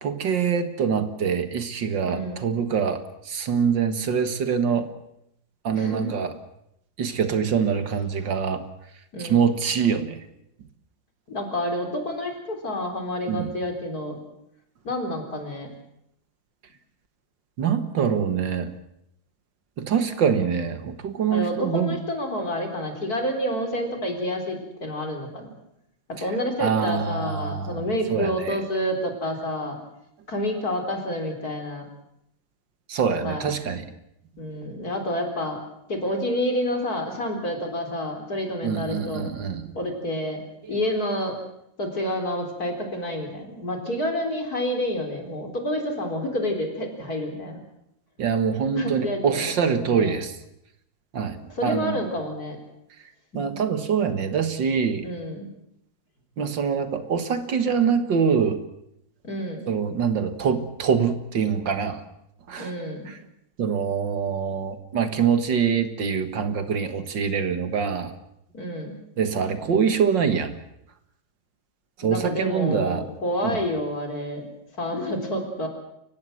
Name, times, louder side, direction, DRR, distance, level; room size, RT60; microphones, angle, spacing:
voice 1, 0.0-3.0 3.3-4.9 5.6-6.3 7.0-8.6 9.2-10.2 13.3-13.5 17.6-18.7 19.8-22.0 26.6-27.9 28.1-28.6 32.9-33.9 38.6-39.7 48.2-50.3 51.1-52.0 53.3-55.1 56.4-58.6 59.7-62.0 62.5-62.7 63.6-68.1 69.2-70.5 72.0-73.0 73.4-73.6, right 7 dB, 75° right, 10 dB, 2.3 m, -24 dB
voice 2, 2.0-2.5 5.7-6.2 9.1-9.5 11.3-14.2 14.8-15.7 21.3-25.5 26.2-29.8 30.3-31.9 33.2-33.5 34.4-35.6 35.9-39.3 39.7-40.4 40.7-41.4 41.8-47.6 48.8-49.5 49.9-50.2 51.5-52.6 53.3-53.6 55.0-55.5 57.0-57.1 59.2-59.6 62.6-63.1 68.5-69.0 72.0-74.5 74.8-75.7, left 1 dB, 50° left, 4 dB, 4.4 m, -29 dB
29.0 x 16.0 x 7.8 m, 0.79 s
omnidirectional pair, 2.0 m